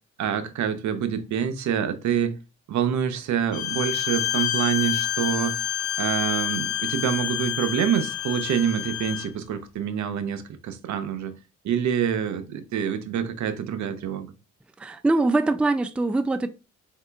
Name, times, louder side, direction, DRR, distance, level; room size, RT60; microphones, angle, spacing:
voice 1, 0.2-2.4 2.7-5.6 6.0-11.4 11.6-14.3, right 8 dB, 70° right, 0.8 m, -26 dB
Bowed string instrument, 3.5-9.3, left 11 dB, 75° left, 0.9 m, -28 dB
voice 2, 14.8-16.5, right 2 dB, 5° right, 0.4 m, -23 dB
4.5 x 2.9 x 3.3 m
cardioid pair, 90°, 30 cm